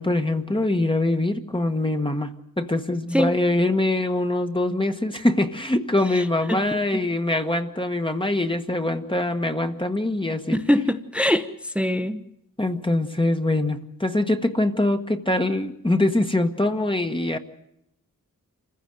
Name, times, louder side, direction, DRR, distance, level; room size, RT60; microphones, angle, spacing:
voice 1, 0.0-10.6 12.6-17.4, left 2 dB, 15° left, 6 dB, 1.3 m, -23 dB
voice 2, 6.1-6.6 6.9-7.0 10.5-12.2, equal, 5° right, 10 dB, 1.0 m, -23 dB
27.5 x 15.5 x 7.7 m, 0.82 s
wide cardioid pair, 85°, 34 cm